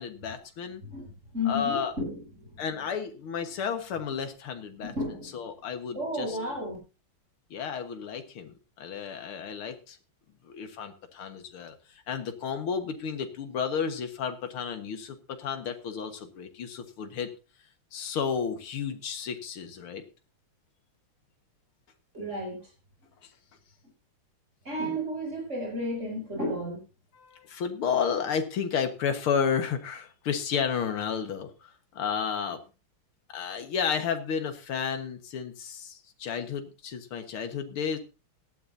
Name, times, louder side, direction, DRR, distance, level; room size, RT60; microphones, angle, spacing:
voice 1, 0.0-0.8 1.5-1.9 2.6-4.9 5.3-6.4 7.5-10.0 10.4-17.3 17.9-20.0 23.2-23.3 27.1-32.6 33.3-38.0, left 7 dB, 90° left, 7 dB, 2.4 m, -32 dB
voice 2, 0.8-2.6 4.8-5.4 5.9-6.8 22.1-22.6 24.6-26.8, left 1 dB, 35° right, 0 dB, 7.6 m, -33 dB
17.5 x 12.5 x 2.7 m, 0.31 s
omnidirectional pair, 2.3 m